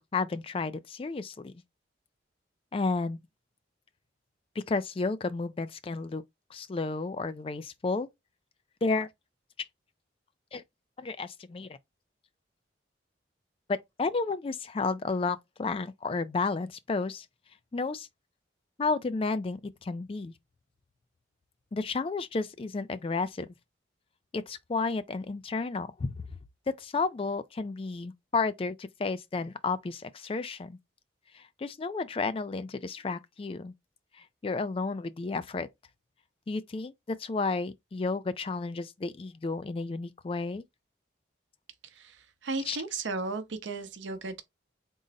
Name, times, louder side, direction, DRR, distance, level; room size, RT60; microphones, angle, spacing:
voice 1, 0.0-1.5 2.7-3.2 4.6-6.2 6.5-8.1 8.8-9.1 10.5-10.6 11.0-11.8 13.7-17.3 17.7-18.1 18.8-20.3 21.7-23.5 24.3-26.1 26.7-30.8 31.3-33.7 34.2-35.7 36.5-40.6 42.6-42.8, left 3 dB, 30° left, 0.3 m, -32 dB
voice 2, 41.8-44.4, right 3 dB, 80° right, 0.7 m, -35 dB
3.8 x 2.0 x 3.9 m
head